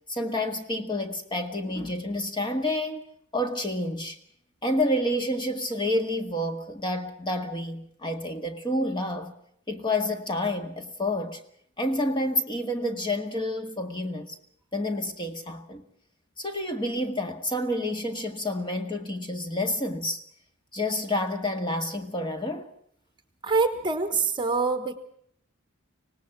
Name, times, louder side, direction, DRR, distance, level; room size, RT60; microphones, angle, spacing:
voice 1, 0.1-3.0 3.3-4.2 4.6-9.3 9.7-11.4 11.8-14.4 14.7-15.8 16.4-20.2 20.7-22.7, left 1 dB, 20° left, 1.9 m, -29 dB
voice 2, 23.4-25.0, right 4 dB, 20° right, 1.2 m, -25 dB
25.0 x 19.0 x 6.0 m
head